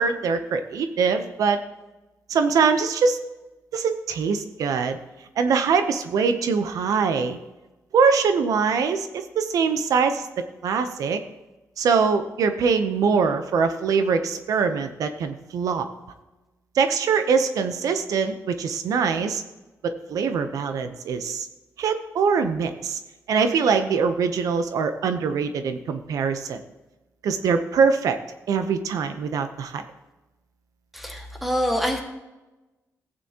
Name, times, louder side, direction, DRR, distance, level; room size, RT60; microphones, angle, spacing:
voice 1, 0.0-1.6 2.3-3.2 3.7-5.0 5.4-7.4 7.9-11.2 11.8-15.9 16.7-19.4 19.8-21.5 21.8-23.0 23.3-26.6 27.2-28.2 28.5-29.8, right 5 dB, 85° right, 9 dB, 0.8 m, -23 dB
voice 2, 30.9-32.0, equal, ahead, 2 dB, 1.8 m, -25 dB
15.0 x 9.0 x 2.9 m, 1.1 s
cardioid pair, 105°, 6 cm